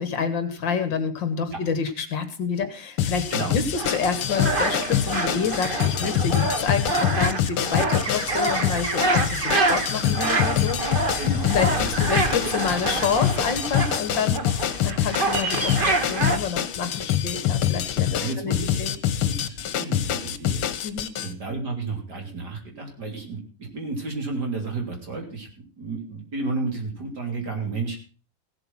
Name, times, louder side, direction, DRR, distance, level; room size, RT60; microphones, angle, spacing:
voice 1, 0.0-11.1 11.5-11.7 12.0-19.0 20.8-21.1, left 6 dB, 60° left, 10 dB, 1.9 m, -28 dB
sound 1, 3.0-21.3, left 10 dB, 80° left, 1.8 m, -25 dB
sound 2, 3.8-16.4, right 2 dB, 30° right, 1.3 m, -27 dB
voice 2, 11.2-11.9 18.2-18.8 19.2-20.6 21.2-25.5 25.8-28.1, right 3 dB, 50° right, 1 dB, 3.6 m, -32 dB
16.0 x 8.0 x 6.0 m, 0.37 s
omnidirectional pair, 2.4 m